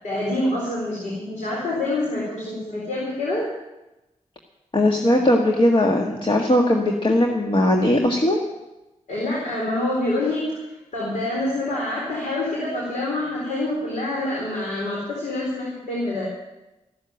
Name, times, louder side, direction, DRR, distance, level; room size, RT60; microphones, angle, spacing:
voice 1, 0.0-3.4 9.1-10.6 10.9-16.3, left 1 dB, 85° left, -4 dB, 4.0 m, -26 dB
voice 2, 4.7-8.4, left 1 dB, 40° left, 1 dB, 1.8 m, -19 dB
15.0 x 7.4 x 9.1 m, 1.0 s
cardioid pair, 45°, 13 cm